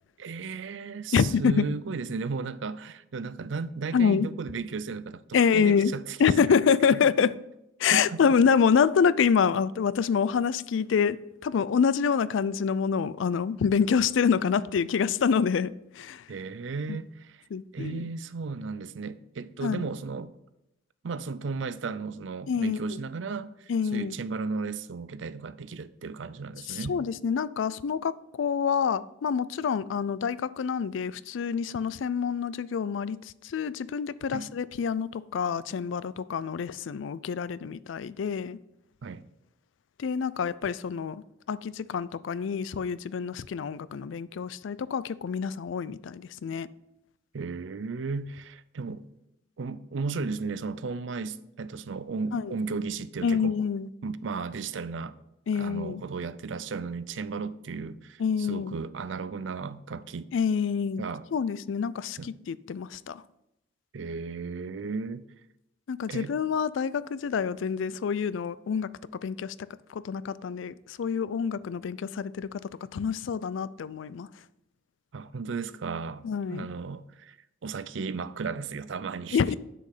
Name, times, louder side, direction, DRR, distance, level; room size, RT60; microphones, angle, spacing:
voice 1, 0.2-6.2 6.4-6.6 6.9-7.0 7.9-8.2 16.3-17.4 17.7-20.3 21.0-27.0 34.3-34.5 39.0-39.3 47.3-49.1 49.6-53.5 54.0-55.2 55.5-60.3 61.0-61.3 62.2-62.3 63.9-65.2 66.1-66.3 75.1-77.4 77.6-79.4, right 4 dB, 75° right, 0.5 m, -35 dB
voice 2, 1.1-1.6 3.9-4.3 5.3-5.9 6.2-7.3 7.8-16.2 17.5-18.1 19.6-19.9 22.5-23.0 23.7-24.2 26.7-33.2 33.4-38.6 40.0-46.7 52.3-52.5 53.2-53.9 55.5-56.0 58.2-58.7 60.3-61.0 61.3-63.2 65.9-68.9 69.2-69.5 69.9-72.5 72.9-74.3 76.2-76.7 79.3-79.5, left 6 dB, 80° left, 0.4 m, -26 dB
7.7 x 6.6 x 4.9 m
head